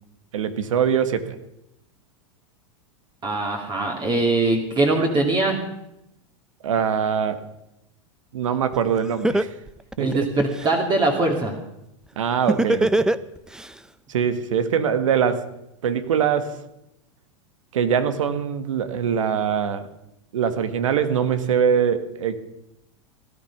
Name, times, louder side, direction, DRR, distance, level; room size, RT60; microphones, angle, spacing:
voice 1, 0.3-1.4 6.6-7.4 8.3-9.5 10.0-10.3 12.2-13.1 14.1-15.5 15.8-16.6 17.7-19.9 20.3-22.4, right 7 dB, 80° right, 11 dB, 1.5 m, -23 dB
voice 2, 3.2-5.6 10.0-11.5, right 2 dB, 25° right, 1 dB, 2.5 m, -22 dB
Laughter, 8.7-8.8 9.2-10.7 12.5-13.7, right 1 dB, 5° right, 0.5 m, -21 dB
17.5 x 12.0 x 5.9 m, 0.86 s
hypercardioid pair, 110°, 16 cm